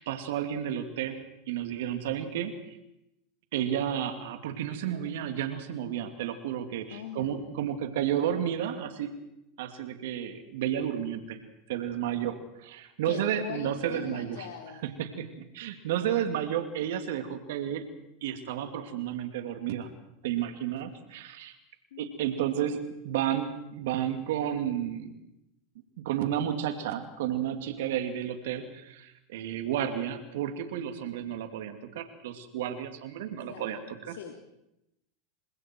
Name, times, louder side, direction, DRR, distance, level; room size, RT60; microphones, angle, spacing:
voice 1, 0.0-2.8 3.5-9.1 9.6-11.4 11.7-14.5 14.8-17.9 18.2-19.9 20.2-21.6 22.0-25.2 26.0-34.2, right 10 dB, 70° right, 7 dB, 2.7 m, -32 dB
voice 2, 6.9-7.4 13.0-14.9 21.9-22.2 33.5-33.8 34.1-34.3, left 8 dB, 75° left, 3 dB, 2.7 m, -41 dB
29.5 x 25.0 x 4.7 m, 0.86 s
hypercardioid pair, 100°, 0 cm